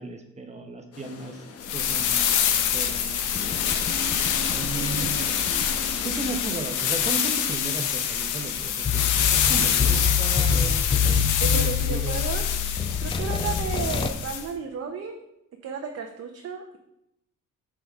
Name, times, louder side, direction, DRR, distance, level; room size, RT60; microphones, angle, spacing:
voice 1, 0.0-1.5 1.7-3.5 4.3-5.3 6.0-10.9 11.5-12.3 12.9-13.0, right 3 dB, 20° right, 5 dB, 0.9 m, -35 dB
sound 1, 0.9-7.3, left 5 dB, 50° left, 0.9 m, -43 dB
sound 2, 1.6-14.5, left 8 dB, 80° left, 0.7 m, -26 dB
sound 3, 3.3-6.3 8.8-14.1, left 7 dB, 20° left, 0.3 m, -27 dB
voice 2, 4.7-5.3 11.4-12.6 13.0-15.2 15.6-16.8, right 6 dB, 55° right, 3 dB, 0.7 m, -33 dB
5.4 x 4.9 x 3.5 m, 0.83 s
cardioid pair, 90°, 30 cm